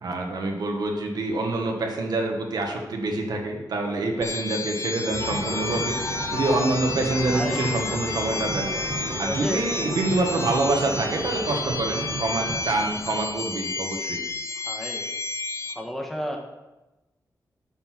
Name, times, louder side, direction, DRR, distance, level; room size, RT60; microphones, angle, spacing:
voice 1, 0.0-8.7 9.2-14.2, right 2 dB, 70° right, 2 dB, 1.3 m, -26 dB
sound 1, 4.2-15.7, left 3 dB, 40° left, 0.5 m, -32 dB
sound 2, 5.1-12.6, right 3 dB, 55° right, 1.0 m, -35 dB
sound 3, 5.2-13.3, left 2 dB, 60° left, 1.2 m, -36 dB
voice 2, 7.3-7.7 9.2-9.9 14.6-15.1 15.7-16.4, equal, 5° left, 1 dB, 1.5 m, -32 dB
8.6 x 4.4 x 6.0 m, 1.0 s
wide cardioid pair, 90°, 7 cm